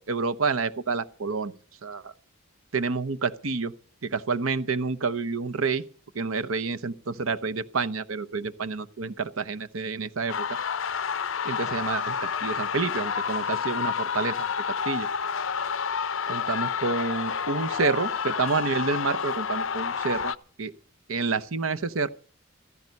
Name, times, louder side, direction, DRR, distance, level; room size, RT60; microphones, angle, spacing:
voice 1, 0.0-1.5 1.8-2.1 2.7-3.7 4.0-5.8 6.1-10.5 11.4-14.5 14.8-15.1 16.3-20.3 20.6-20.7 21.1-22.1, right 4 dB, 85° right, 0.9 m, -28 dB
sound 1, 10.3-20.3, left 6 dB, 65° left, 0.6 m, -29 dB
15.5 x 14.0 x 5.4 m
head